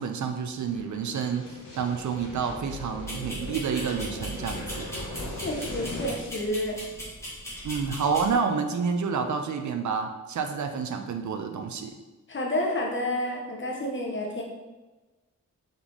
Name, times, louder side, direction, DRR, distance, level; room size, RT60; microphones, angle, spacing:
voice 1, 0.0-4.9 7.6-12.0, right 6 dB, 70° right, 6 dB, 0.5 m, -29 dB
sound 1, 0.6-6.1, left 1 dB, 75° left, 0.9 m, -38 dB
sound 2, 3.1-8.3, equal, 10° left, 1.2 m, -39 dB
voice 2, 5.4-6.8 12.3-14.4, left 1 dB, 40° left, -1 dB, 0.6 m, -29 dB
3.9 x 3.7 x 3.0 m, 1.2 s
wide cardioid pair, 180°, 31 cm